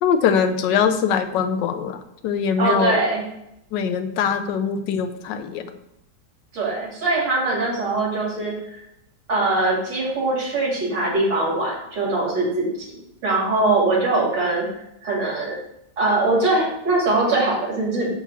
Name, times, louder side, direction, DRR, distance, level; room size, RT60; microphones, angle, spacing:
voice 1, 0.0-3.0 3.7-5.7, left 7 dB, 85° left, 9 dB, 1.3 m, -22 dB
voice 2, 2.6-3.3 6.5-8.5 9.3-12.7 13.2-15.6 16.0-18.1, right 2 dB, 80° right, -4 dB, 3.0 m, -22 dB
7.1 x 6.8 x 2.4 m, 0.81 s
omnidirectional pair, 1.9 m